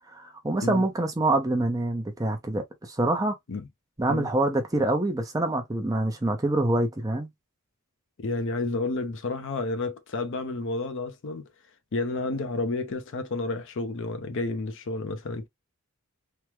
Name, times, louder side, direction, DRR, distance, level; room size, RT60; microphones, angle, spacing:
voice 1, 0.1-3.3 4.0-7.3, right 2 dB, 15° right, 0.6 m, -26 dB
voice 2, 8.2-11.5 11.9-15.5, left 3 dB, 55° left, 0.5 m, -30 dB
3.4 x 2.0 x 2.9 m
head